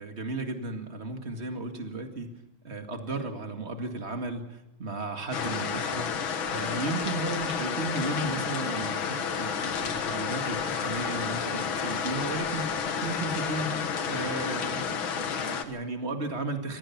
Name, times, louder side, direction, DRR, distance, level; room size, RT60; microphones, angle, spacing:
voice 1, 0.0-2.3 2.6-12.7 13.0-13.8 14.1-16.8, right 2 dB, 35° right, 5 dB, 2.4 m, -34 dB
sound 1, 5.3-15.7, left 6 dB, 80° left, 2.2 m, -31 dB
25.5 x 18.0 x 6.0 m, 0.89 s
omnidirectional pair, 2.2 m